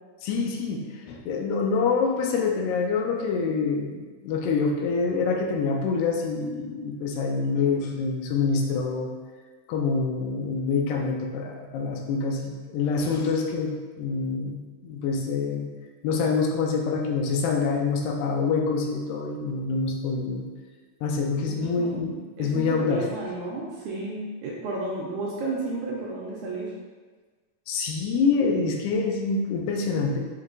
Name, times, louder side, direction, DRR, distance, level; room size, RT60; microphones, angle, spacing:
voice 1, 0.2-9.1 9.7-15.7 16.0-20.5 21.0-23.1 27.7-30.2, left 4 dB, 85° left, 1 dB, 2.3 m, -26 dB
voice 2, 21.5-21.9 22.4-26.7, right 2 dB, 80° right, -4 dB, 1.8 m, -32 dB
6.0 x 3.2 x 2.5 m, 1.4 s
omnidirectional pair, 3.9 m